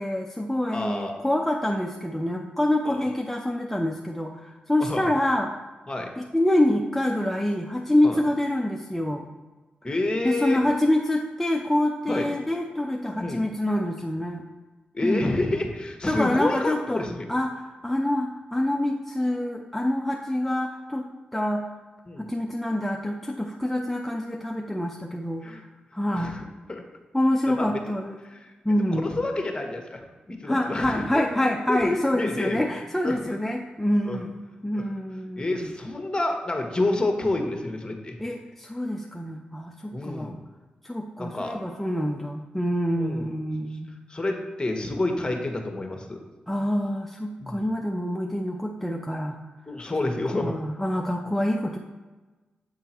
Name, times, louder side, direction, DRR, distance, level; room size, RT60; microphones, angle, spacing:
voice 1, 0.0-5.5 6.2-9.2 10.2-14.4 15.0-15.2 16.1-17.0 17.3-21.6 22.2-25.4 25.9-26.4 27.1-28.2 28.6-29.2 30.4-34.3 34.6-35.7 38.2-40.4 40.8-43.9 46.5-49.4 50.3-51.8, left 1 dB, 5° left, 1 dB, 0.7 m, -26 dB
voice 2, 0.7-1.1 2.8-3.1 4.8-5.1 5.9-6.1 8.0-8.2 9.8-10.6 12.1-12.2 13.1-13.4 14.9-17.3 22.1-22.3 25.4-25.6 26.1-26.8 27.5-27.7 28.2-28.5 28.9-32.8 33.0-33.3 34.0-34.2 34.7-34.9 35.4-38.2 39.9-40.4 41.2-41.6 43.0-43.3 44.1-46.2 47.4-47.6 49.7-50.6, left 2 dB, 25° left, 3 dB, 1.4 m, -29 dB
8.2 x 3.7 x 4.5 m, 1.3 s
supercardioid pair, 40°, 3 cm